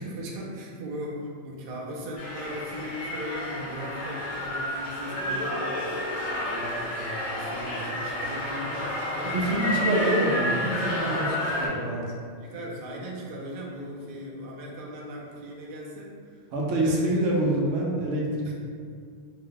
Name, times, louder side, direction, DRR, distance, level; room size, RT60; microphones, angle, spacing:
voice 1, 0.0-6.1 6.4-10.7 12.4-16.4 16.7-17.9 18.4-18.5, right 1 dB, 60° right, -3 dB, 0.6 m, -38 dB
sound 1, 2.2-11.7, left 1 dB, 45° left, 0.8 m, -30 dB
voice 2, 9.3-12.0 16.5-18.5, right 1 dB, 75° right, -3 dB, 0.9 m, -26 dB
2.8 x 2.1 x 3.8 m, 2.1 s
omnidirectional pair, 1.3 m